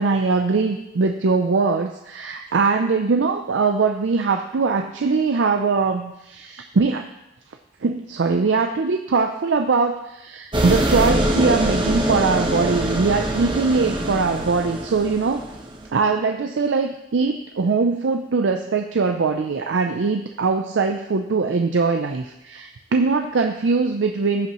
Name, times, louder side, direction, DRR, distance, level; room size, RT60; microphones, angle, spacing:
voice 1, 0.0-7.1 7.8-15.5 15.9-24.5, right 4 dB, 85° right, 5 dB, 0.5 m, -21 dB
sound 1, 10.5-15.9, right 1 dB, 25° right, 1.1 m, -23 dB
15.5 x 5.6 x 3.0 m, 0.88 s
head